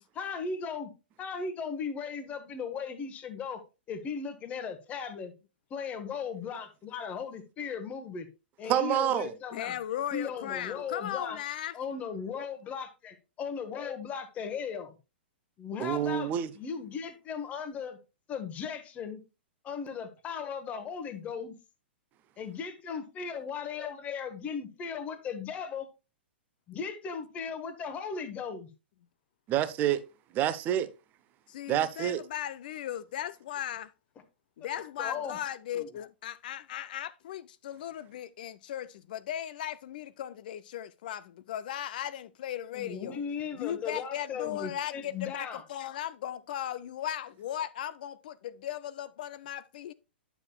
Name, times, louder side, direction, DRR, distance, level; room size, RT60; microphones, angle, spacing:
voice 1, 0.1-0.9 1.2-3.6 3.9-5.3 5.7-8.3 8.6-9.8 10.1-11.4 11.7-15.0 15.6-18.0 18.3-19.2 19.6-21.5 22.4-25.9 26.7-28.7 35.0-35.4 35.7-35.9 42.7-45.6, left 6 dB, 25° left, 1.1 m, -37 dB
voice 2, 8.7-9.3 15.8-16.5 29.5-30.0 30.3-30.9 31.7-32.2, right 11 dB, 30° right, 0.7 m, -27 dB
voice 3, 9.5-11.7 31.5-33.9 34.6-43.2 43.6-49.9, left 11 dB, 50° left, 0.4 m, -37 dB
9.6 x 7.0 x 2.3 m
figure-of-eight pair, 105°, 6 cm